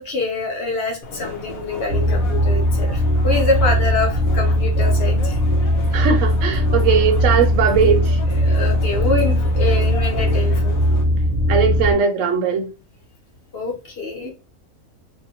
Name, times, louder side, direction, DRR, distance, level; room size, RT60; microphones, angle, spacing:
voice 1, 0.0-5.4 8.4-10.8 13.5-14.3, left 3 dB, 50° left, 0.9 m, -25 dB
sound 1, 1.0-11.0, left 2 dB, 90° left, 1.2 m, -35 dB
sound 2, 1.9-11.9, equal, 20° right, 0.5 m, -19 dB
voice 2, 5.9-8.2 11.5-12.7 14.2-14.3, right 6 dB, 70° right, 0.9 m, -19 dB
2.6 x 2.1 x 2.8 m
omnidirectional pair, 1.4 m